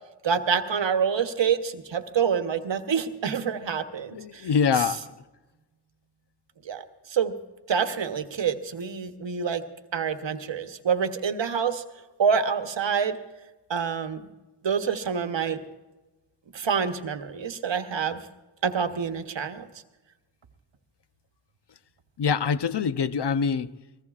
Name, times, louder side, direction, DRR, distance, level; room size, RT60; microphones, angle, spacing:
voice 1, 0.2-4.5 4.8-4.9 6.7-6.8 7.1-7.3 7.7-9.6 9.9-11.8 12.2-13.2 13.7-14.2 14.6-15.6 16.5-18.2 18.6-19.7, right 6 dB, 80° right, 1.0 m, -27 dB
voice 2, 4.1-5.1 22.2-23.7, left 6 dB, 65° left, 0.7 m, -24 dB
23.0 x 20.0 x 2.4 m
cardioid pair, 45°, 44 cm